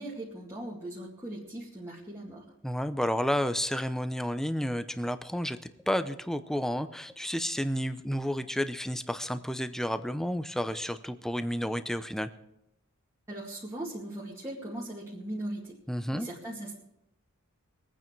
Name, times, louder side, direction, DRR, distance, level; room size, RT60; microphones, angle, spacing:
voice 1, 0.0-2.5 13.3-15.8 16.1-16.7, right 1 dB, 15° right, -6 dB, 2.2 m, -39 dB
voice 2, 2.6-5.6 5.9-12.3 15.9-16.3, equal, ahead, 10 dB, 0.6 m, -31 dB
22.5 x 9.1 x 4.6 m, 0.81 s
head